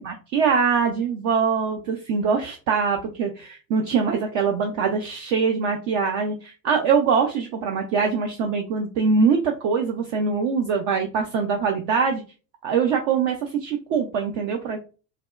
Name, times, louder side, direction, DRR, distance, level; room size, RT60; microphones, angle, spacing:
voice 1, 0.0-12.2 12.6-14.8, right 5 dB, 45° right, 3 dB, 0.6 m, -23 dB
3.3 x 2.1 x 2.4 m, 0.34 s
figure-of-eight pair, 80°, 50 cm